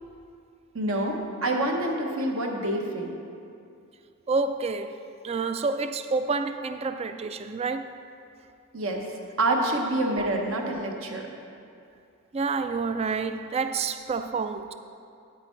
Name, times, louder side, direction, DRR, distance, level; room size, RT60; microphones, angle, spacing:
voice 1, 0.7-3.2 8.7-9.0 9.4-11.2, right 1 dB, 70° right, 1.1 m, -27 dB
voice 2, 4.3-5.0 5.2-8.0 10.2-10.3 12.3-14.7, right 4 dB, 30° right, 0.3 m, -28 dB
9.0 x 9.0 x 4.5 m
head